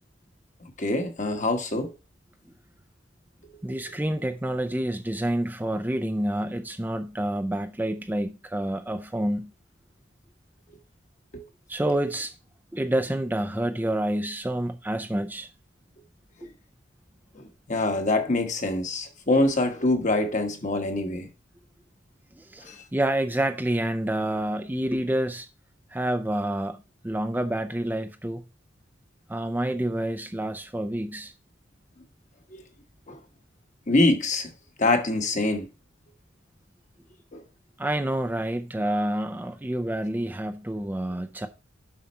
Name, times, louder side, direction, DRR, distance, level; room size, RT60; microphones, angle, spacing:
voice 1, 0.8-1.9 11.3-11.4 17.7-21.3 22.7-22.8 32.5-32.6 33.1-33.2 33.9-34.5 34.8-35.7 37.3-37.4, left 2 dB, 40° left, 1.3 m, -24 dB
voice 2, 3.6-9.5 11.7-12.3 12.7-15.5 16.4-16.5 22.4-25.5 25.9-28.4 29.3-31.3 37.8-41.5, right 1 dB, 10° right, 0.5 m, -28 dB
7.5 x 5.7 x 4.2 m
head